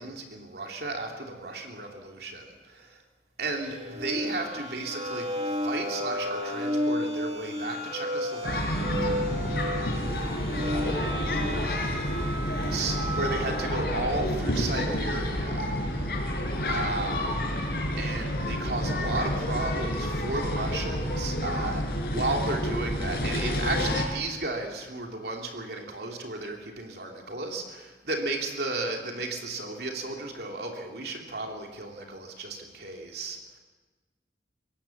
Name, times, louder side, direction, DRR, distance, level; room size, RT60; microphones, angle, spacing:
voice 1, 0.0-3.0 3.4-10.2 12.6-15.7 16.7-17.4 18.0-33.4, right 2 dB, 65° right, 1 dB, 2.9 m, -34 dB
sound 1, 3.6-13.8, equal, 35° right, 1.7 m, -33 dB
sound 2, 8.4-24.0, left 1 dB, 60° left, 4.6 m, -29 dB
voice 2, 10.7-11.4 11.7-12.1, left 2 dB, 20° left, 0 dB, 5.6 m, -43 dB
23.5 x 17.5 x 7.2 m, 1.3 s
head